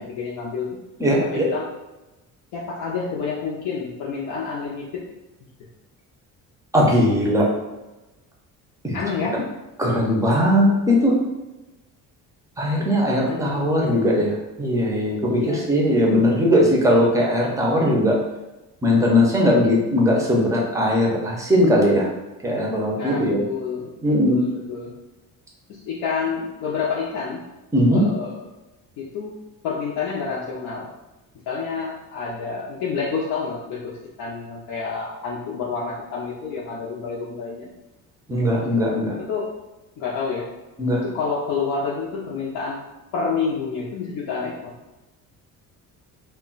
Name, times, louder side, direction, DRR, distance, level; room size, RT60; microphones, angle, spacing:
voice 1, 0.1-0.7 1.2-1.6 2.5-5.0 8.9-9.4 13.3-13.7 15.3-15.7 23.0-24.9 25.7-27.4 27.9-28.4 29.0-29.3 29.6-30.9 31.5-33.8 34.2-37.7 39.2-39.5 40.0-40.5 41.0-42.8 43.1-44.7, left 5 dB, 75° left, -5 dB, 0.6 m, -28 dB
voice 2, 1.0-1.5 6.7-7.5 8.8-9.0 9.8-11.1 12.6-18.2 18.8-22.1 22.4-23.4 24.0-24.4 27.7-28.1 38.3-39.1 40.8-41.0, equal, 10° right, -2 dB, 0.5 m, -19 dB
2.2 x 2.2 x 3.8 m, 1.0 s
cardioid pair, 155°, 33 cm